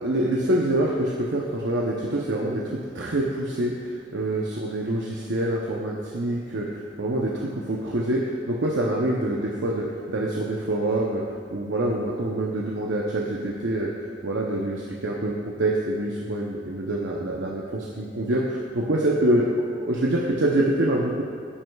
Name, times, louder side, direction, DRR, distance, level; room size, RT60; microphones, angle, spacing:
voice 1, 0.0-11.2 11.5-19.5 19.8-21.2, right 1 dB, 90° right, -3 dB, 0.7 m, -26 dB
9.8 x 7.8 x 2.3 m, 2.2 s
head